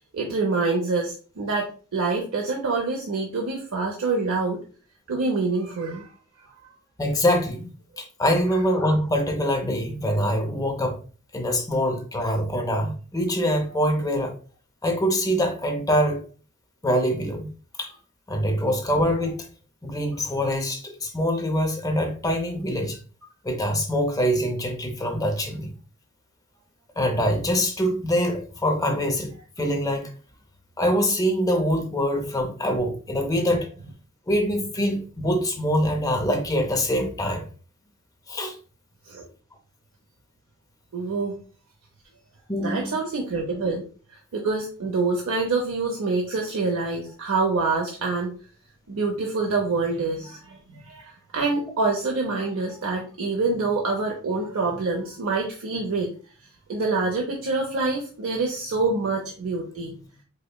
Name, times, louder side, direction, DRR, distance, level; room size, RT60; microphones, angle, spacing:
voice 1, 0.1-4.6 5.1-6.1 39.0-39.3 40.9-41.3 42.6-48.3 48.9-56.1 56.7-59.9, right 3 dB, 65° right, 1 dB, 0.6 m, -26 dB
voice 2, 7.0-11.0 11.3-14.3 14.8-16.2 16.8-17.5 17.8-17.9 18.3-19.5 19.8-23.0 23.4-25.7 27.0-30.1 30.8-33.7 34.3-37.4 38.3-38.5 42.5-42.9, equal, 15° left, 3 dB, 0.5 m, -24 dB
4.9 x 2.1 x 2.2 m, 0.38 s
head